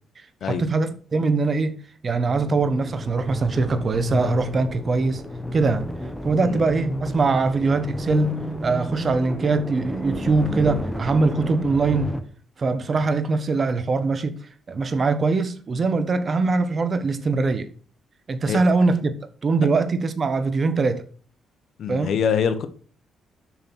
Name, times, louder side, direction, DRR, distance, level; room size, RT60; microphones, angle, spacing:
voice 1, 0.4-1.7 2.0-5.2 5.5-5.9 6.2-8.3 8.6-12.1 12.6-14.4 14.7-17.7 18.3-19.2 19.4-21.0 21.9-22.1, right 3 dB, 40° right, 1.2 m, -22 dB
sound 1, 2.3-12.2, left 1 dB, 5° left, 1.3 m, -31 dB
voice 2, 21.8-22.7, left 7 dB, 65° left, 1.2 m, -24 dB
7.1 x 6.3 x 6.1 m
cardioid pair, 90°, 0 cm